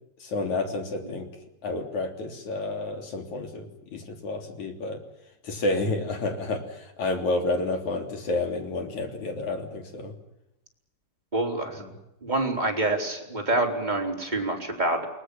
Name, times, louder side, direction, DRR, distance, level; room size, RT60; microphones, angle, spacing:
voice 1, 0.2-1.3 1.6-5.0 5.4-10.1 11.8-11.9, left 2 dB, 40° left, 4 dB, 4.1 m, -30 dB
voice 2, 11.3-11.8 12.2-15.0, right 2 dB, 10° right, 1 dB, 3.8 m, -26 dB
29.5 x 20.5 x 7.2 m, 0.88 s
omnidirectional pair, 5.4 m